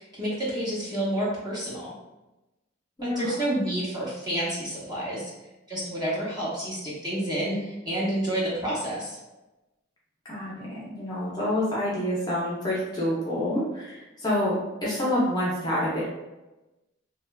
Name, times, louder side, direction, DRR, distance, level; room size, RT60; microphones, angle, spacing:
voice 1, 0.0-1.9 3.0-5.2 5.7-9.2, right 1 dB, 20° right, -7 dB, 0.7 m, -29 dB
voice 2, 3.0-3.3 10.3-16.0, left 1 dB, 20° left, -6 dB, 0.5 m, -27 dB
2.8 x 2.3 x 2.2 m, 1.0 s
head